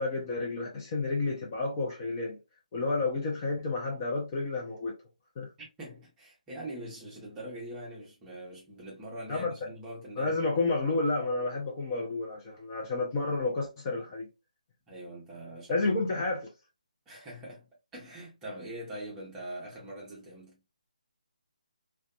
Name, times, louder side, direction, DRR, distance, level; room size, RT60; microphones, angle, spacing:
voice 1, 0.0-2.4 2.7-4.9 5.4-5.5 9.3-9.5 10.2-14.3 15.7-16.5, left 3 dB, 25° left, 0.6 m, -30 dB
voice 2, 5.6-10.4 14.9-15.9 17.1-20.6, right 1 dB, 10° right, 0.8 m, -43 dB
2.4 x 2.2 x 2.3 m
figure-of-eight pair, 160°, 4 cm